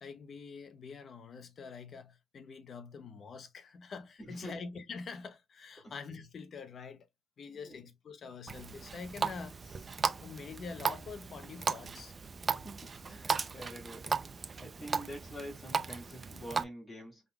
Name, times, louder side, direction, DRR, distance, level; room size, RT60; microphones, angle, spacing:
voice 1, 0.0-7.1 7.4-9.9 10.2-12.1, left 5 dB, 50° left, 0.9 m, -46 dB
voice 2, 4.2-4.6 5.8-5.9 7.5-7.8 12.5-14.2 14.6-17.2, equal, 30° left, 1.9 m, -46 dB
Water tap faucet, 8.5-16.6, right 5 dB, 35° right, 0.6 m, -36 dB
5.4 x 3.8 x 2.3 m
cardioid pair, 90°, 0 cm